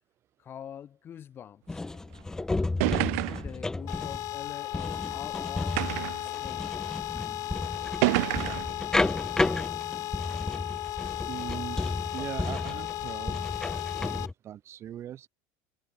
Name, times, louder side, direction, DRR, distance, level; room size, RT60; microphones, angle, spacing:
voice 1, 0.4-1.8 2.7-6.8, left 9 dB, 30° left, 2.7 m, -45 dB
sound 1, 1.7-14.3, left 2 dB, 5° left, 0.6 m, -33 dB
sound 2, 2.2-2.3 2.8-3.6 4.5-4.6 5.8-6.3 7.2-7.3 8.0-8.8, right 28 dB, 75° right, 0.4 m, -28 dB
sound 3, 3.9-14.3, left 16 dB, 45° left, 3.4 m, -35 dB
voice 2, 11.3-11.8 12.1-13.5 14.0-15.3, right 11 dB, 35° right, 7.0 m, -40 dB
cardioid pair, 160°, 8 cm